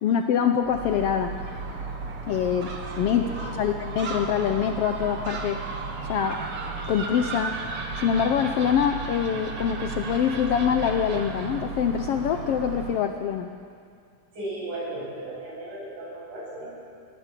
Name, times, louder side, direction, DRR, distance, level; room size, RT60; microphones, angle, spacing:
voice 1, 0.0-1.4 2.3-5.6 6.0-6.4 6.9-7.6 8.0-13.5, left 8 dB, 80° left, 6 dB, 1.3 m, -25 dB
Gull seagull, 0.6-13.0, right 3 dB, 50° right, 2.7 m, -34 dB
voice 2, 14.3-16.9, right 1 dB, 65° right, -5 dB, 9.4 m, -36 dB
22.5 x 16.5 x 8.4 m, 2.3 s
omnidirectional pair, 3.7 m